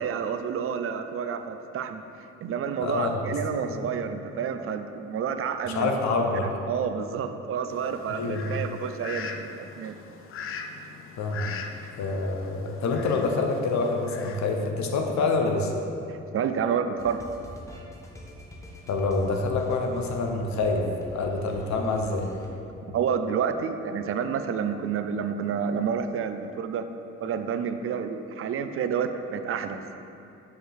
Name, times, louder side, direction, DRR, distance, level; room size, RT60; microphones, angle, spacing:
voice 1, 0.0-2.0 2.4-6.0 6.4-10.0 16.1-17.2 22.9-26.9 27.2-29.8, right 7 dB, 50° right, 9 dB, 0.4 m, -29 dB
voice 2, 2.8-3.3 3.6-3.9 5.7-6.5 8.1-8.6 11.2-11.5 12.0-15.7 18.9-20.9 21.1-22.3, left 3 dB, 65° left, 2 dB, 0.8 m, -26 dB
Fowl, 7.7-14.7, left 5 dB, 45° left, 0.4 m, -41 dB
sound 1, 17.0-22.5, left 1 dB, 10° left, 0.9 m, -45 dB
6.4 x 4.5 x 3.5 m, 2.7 s
cardioid pair, 90°, 30 cm